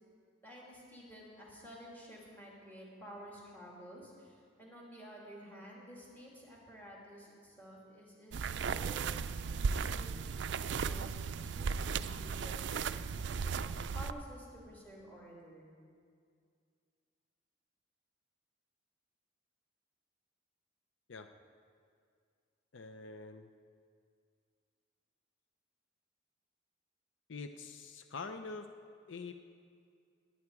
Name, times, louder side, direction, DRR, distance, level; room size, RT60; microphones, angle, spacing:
voice 1, 0.4-9.1 9.7-15.7, equal, 10° left, -4 dB, 2.7 m, -52 dB
sound 1, 8.3-14.1, right 5 dB, 65° right, 0.4 m, -36 dB
voice 2, 22.7-23.5 27.3-28.7 29.1-29.3, left 4 dB, 75° left, 7 dB, 0.6 m, -45 dB
18.5 x 9.6 x 4.8 m, 2.2 s
head